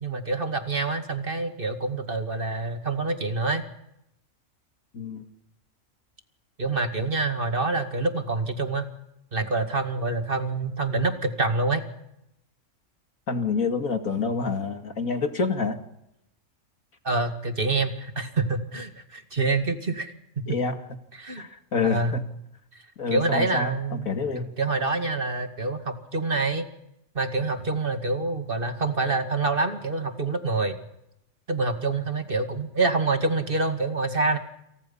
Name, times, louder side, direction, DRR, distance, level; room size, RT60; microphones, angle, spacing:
voice 1, 0.0-3.6 6.6-8.9 9.3-11.9 17.0-20.1 21.1-21.5 21.8-22.2 23.1-24.1 24.3-26.7 27.1-30.8 31.5-34.4, right 3 dB, 40° right, 6 dB, 2.4 m, -26 dB
voice 2, 4.9-5.2 13.3-15.8 20.5-20.8 21.4-22.2 23.0-24.5, left 4 dB, 85° left, 6 dB, 2.7 m, -27 dB
29.0 x 28.0 x 5.6 m, 0.84 s
omnidirectional pair, 1.4 m